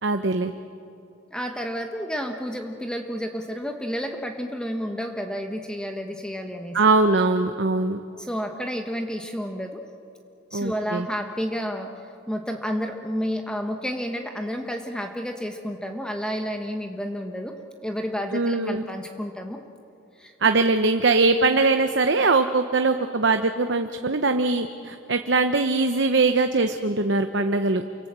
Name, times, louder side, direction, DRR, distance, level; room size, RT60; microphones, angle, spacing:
voice 1, 0.0-0.5 6.7-8.0 10.5-11.1 18.3-18.8 20.4-27.8, right 3 dB, 60° right, 7 dB, 0.9 m, -21 dB
voice 2, 1.3-6.8 8.2-9.8 10.5-17.5 17.8-19.6 20.2-20.3, equal, 5° left, 4 dB, 1.2 m, -30 dB
28.5 x 25.0 x 7.5 m, 2.8 s
head